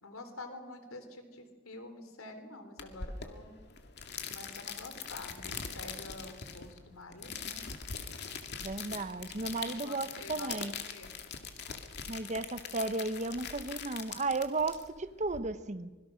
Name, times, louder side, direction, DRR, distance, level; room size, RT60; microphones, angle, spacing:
voice 1, 0.0-3.5 4.3-7.6 9.8-10.5 10.9-11.1, left 2 dB, 80° left, 8 dB, 3.4 m, -47 dB
sound 1, 2.8-15.4, left 6 dB, 55° left, 2.2 m, -42 dB
voice 2, 8.6-10.7 12.1-15.9, right 3 dB, 35° right, 12 dB, 1.0 m, -34 dB
25.5 x 21.5 x 6.5 m, 1.2 s
head